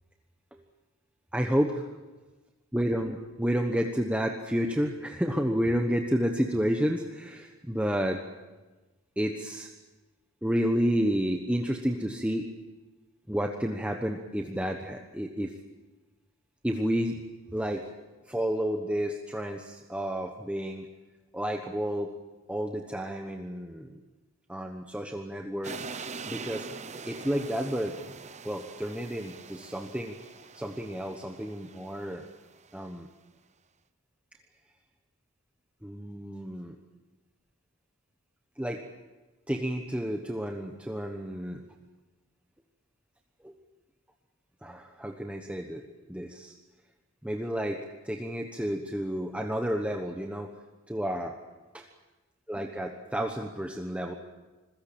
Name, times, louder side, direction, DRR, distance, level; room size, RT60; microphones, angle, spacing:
voice 1, 1.3-1.7 2.7-8.2 9.2-9.7 10.4-12.5 13.3-15.5 16.6-17.2 17.5-17.8 18.3-20.9 21.3-22.1 22.5-24.0 24.5-25.9 26.3-26.7 27.0-28.0 28.4-30.2 30.5-32.2 32.7-33.1 35.8-36.8 38.6-38.8 39.5-41.6 43.4-43.5 44.6-45.8 46.1-46.5 47.2-50.5 50.9-51.4 51.7-51.8 52.5-54.1, equal, 5° right, 3 dB, 1.2 m, -30 dB
sound 1, 25.6-32.7, right 5 dB, 35° right, 1.0 m, -43 dB
27.0 x 16.5 x 8.7 m, 1.2 s
head